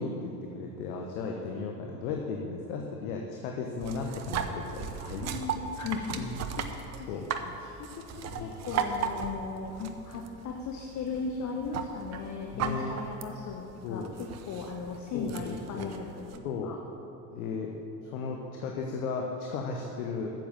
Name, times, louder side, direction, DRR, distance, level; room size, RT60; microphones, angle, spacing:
voice 1, 0.0-5.3 6.2-6.4 7.1-7.2 8.3-8.5 12.5-12.9 13.8-14.1 15.1-15.9 16.4-16.8 17.3-17.7 18.0-20.3, left 4 dB, 60° left, 1 dB, 1.2 m, -35 dB
sound 1, 3.8-16.4, right 7 dB, 35° right, 0.8 m, -37 dB
voice 2, 5.2-6.2 6.6-7.2 7.6-16.8, left 5 dB, 35° left, 1 dB, 1.1 m, -37 dB
9.1 x 7.7 x 7.4 m, 2.9 s
figure-of-eight pair, 75°, 48 cm